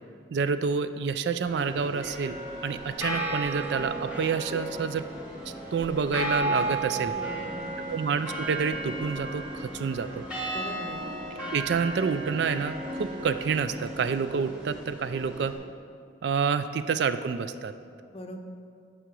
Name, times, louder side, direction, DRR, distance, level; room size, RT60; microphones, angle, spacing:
voice 1, 0.3-2.3 2.6-5.0 5.7-7.1 7.9-10.2 11.5-15.5 16.2-17.7, right 5 dB, 70° right, 11 dB, 0.3 m, -28 dB
sound 1, 1.4-15.5, right 1 dB, 5° right, 1.5 m, -34 dB
voice 2, 7.0-7.9 10.5-11.1 18.1-18.4, left 1 dB, 30° left, 5 dB, 0.5 m, -41 dB
7.5 x 4.9 x 6.8 m, 2.3 s
head